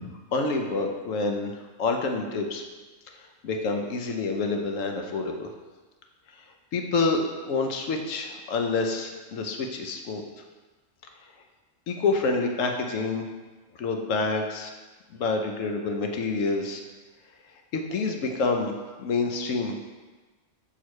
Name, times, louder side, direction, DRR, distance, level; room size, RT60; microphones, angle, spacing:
voice 1, 0.3-1.5 1.8-2.6 3.4-5.5 6.7-10.2 11.9-13.2 13.8-14.7 15.1-16.8 17.7-18.7 19.0-19.7, left 3 dB, 80° left, 3 dB, 1.1 m, -27 dB
6.3 x 6.0 x 3.1 m, 1.3 s
omnidirectional pair, 1.3 m